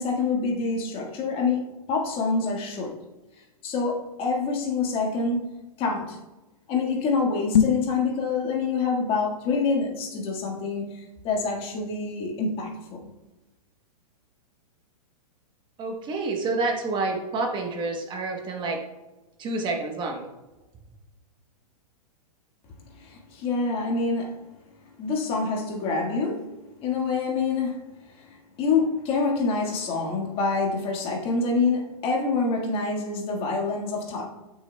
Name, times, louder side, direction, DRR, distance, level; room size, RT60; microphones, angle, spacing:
voice 1, 0.0-2.9 3.6-5.5 5.8-6.2 6.7-13.1 22.9-24.4 25.0-26.5 26.8-27.8 28.2-34.2, left 4 dB, 30° left, 1.6 m, -26 dB
sound 1, 7.4-8.0, left 8 dB, 80° left, 0.9 m, -21 dB
voice 2, 15.8-18.8 19.4-20.3, right 3 dB, 25° right, 1.0 m, -28 dB
13.0 x 6.2 x 2.2 m
hypercardioid pair, 135°, 20 cm